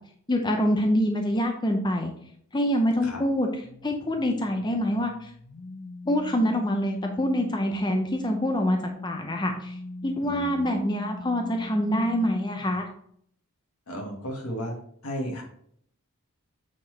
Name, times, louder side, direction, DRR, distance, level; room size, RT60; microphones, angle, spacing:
voice 1, 0.3-2.1 2.5-3.5 3.8-5.3 6.1-9.8 10.0-12.9, equal, 20° left, 3 dB, 0.6 m, -25 dB
sound 1, 3.6-12.9, left 3 dB, 55° left, 0.7 m, -41 dB
voice 2, 10.2-10.7 13.9-14.7 15.0-15.4, equal, 80° left, 1 dB, 1.9 m, -34 dB
8.4 x 4.4 x 3.3 m, 0.64 s
head